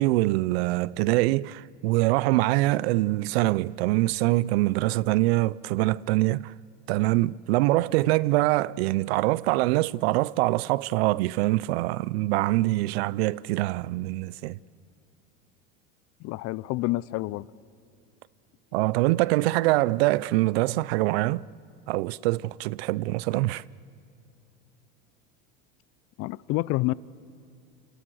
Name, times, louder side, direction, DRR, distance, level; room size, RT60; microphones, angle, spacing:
voice 1, 0.0-6.5 6.9-14.6 18.7-21.5 21.9-23.6, right 19 dB, 75° right, 0.6 m, -24 dB
voice 2, 16.2-17.5 26.2-26.9, left 20 dB, 50° left, 0.6 m, -28 dB
28.0 x 27.5 x 6.4 m
supercardioid pair, 110°, 31 cm